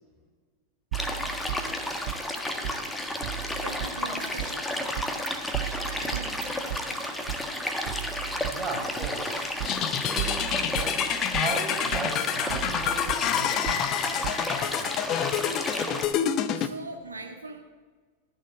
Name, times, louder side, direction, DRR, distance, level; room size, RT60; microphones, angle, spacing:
sound 1, 0.9-16.1, left 1 dB, 10° left, 1.5 m, -32 dB
sound 2, 0.9-2.4 2.6-2.8 3.2-4.5 5.0-5.3 5.5-7.4 7.9-9.3 9.6-9.7 10.2-11.5 11.9-13.8 14.2-14.3, right 16 dB, 50° right, 0.5 m, -36 dB
voice 1, 3.6-4.6 5.4-5.6 6.0-6.3 16.5-17.6, right 3 dB, 80° right, 1 dB, 1.8 m, -40 dB
voice 2, 8.5-9.8 11.2-15.2, right 3 dB, 20° right, -1 dB, 4.5 m, -37 dB
sound 3, 9.6-16.7, left 10 dB, 35° left, 0.8 m, -28 dB
14.0 x 6.9 x 8.3 m, 1.4 s
figure-of-eight pair, 90°, 0 cm